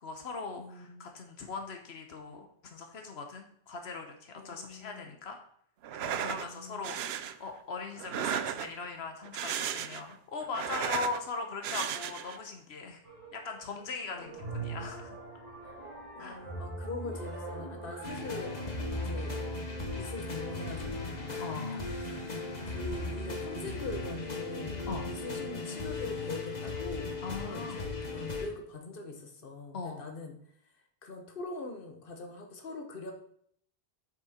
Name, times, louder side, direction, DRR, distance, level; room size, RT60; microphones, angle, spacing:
voice 1, 0.0-5.4 6.0-13.0 13.3-15.2 16.2-16.4 21.4-21.8 24.9-25.1 27.2-27.8 29.7-30.0, left 4 dB, 90° left, 4 dB, 1.3 m, -40 dB
voice 2, 0.6-1.1 4.4-5.1 6.0-6.9 14.1-14.7 15.6-15.9 16.1-18.5 19.0-19.4 19.9-21.4 22.6-30.4 31.0-33.1, left 3 dB, 60° left, 4 dB, 1.4 m, -43 dB
sound 1, 5.8-6.5 6.8-7.3 8.0-8.9 9.2-10.1 10.4-11.2 11.6-12.4, right 9 dB, 85° right, 0.9 m, -35 dB
sound 2, 13.0-13.8 14.2-24.2, right 1 dB, 40° right, 3.3 m, -42 dB
sound 3, 18.0-28.5, left 3 dB, 45° left, 1.4 m, -37 dB
8.0 x 6.2 x 4.3 m, 0.65 s
omnidirectional pair, 1.0 m